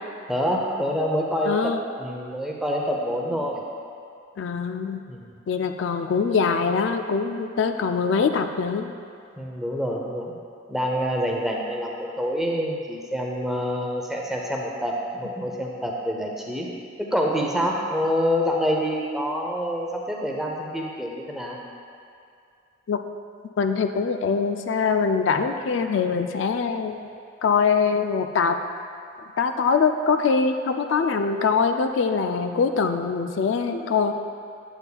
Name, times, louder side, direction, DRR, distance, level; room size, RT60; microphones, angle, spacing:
voice 1, 0.3-1.7 2.0-3.6 5.1-5.4 9.4-10.3 10.7-16.7 17.0-21.6, equal, ahead, -2 dB, 0.6 m, -26 dB
voice 2, 1.5-1.8 4.4-5.0 5.5-8.9 22.9-23.0 23.6-27.1 27.4-28.6 29.4-34.1, left 5 dB, 70° left, 7 dB, 0.3 m, -23 dB
8.7 x 8.1 x 2.3 m, 2.5 s
head